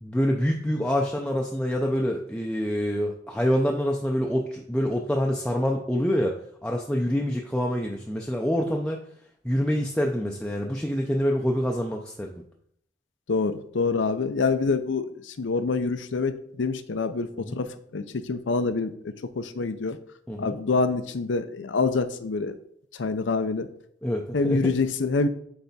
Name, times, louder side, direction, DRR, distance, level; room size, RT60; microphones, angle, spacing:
voice 1, 0.0-6.4 6.6-9.0 9.4-12.4 17.4-17.6 20.3-20.5 24.0-24.7, equal, 5° left, 0 dB, 0.5 m, -26 dB
voice 2, 13.3-20.0 20.4-22.6 22.9-23.7 24.3-25.3, left 4 dB, 80° left, 11 dB, 0.6 m, -26 dB
8.0 x 3.4 x 4.1 m, 0.68 s
head